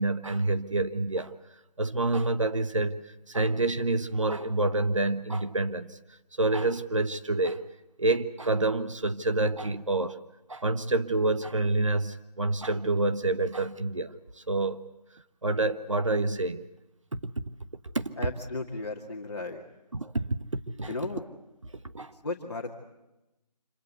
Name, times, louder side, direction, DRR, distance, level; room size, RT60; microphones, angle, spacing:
voice 1, 0.0-1.3 1.8-6.0 6.4-7.6 8.0-10.2 10.5-14.1 14.5-14.8 15.4-16.7 17.1-17.3 17.9-18.1 19.9-20.4 20.8-20.9 21.9-22.1, right 2 dB, 50° right, 1.3 m, -27 dB
voice 2, 18.2-19.6 20.9-21.3 22.1-22.7, left 3 dB, 40° left, 2.1 m, -35 dB
26.5 x 23.0 x 8.2 m
figure-of-eight pair, 170°, 21 cm